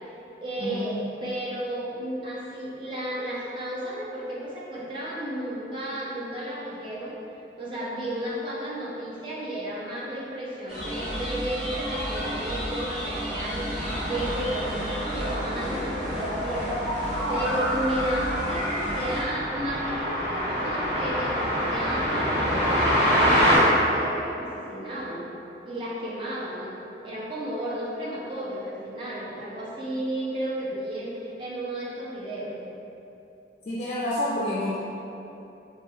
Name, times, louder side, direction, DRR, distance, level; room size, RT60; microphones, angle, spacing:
voice 1, 0.4-7.2 7.6-25.3 25.6-32.5, right 1 dB, 30° right, -7 dB, 0.5 m, -33 dB
sound 1, 10.7-19.2, equal, ahead, 0.9 m, -30 dB
sound 2, 13.7-23.6, equal, 70° right, 1.3 m, -27 dB
voice 2, 33.7-34.8, left 1 dB, 40° left, -7 dB, 0.3 m, -28 dB
3.1 x 2.3 x 2.7 m, 2.9 s
head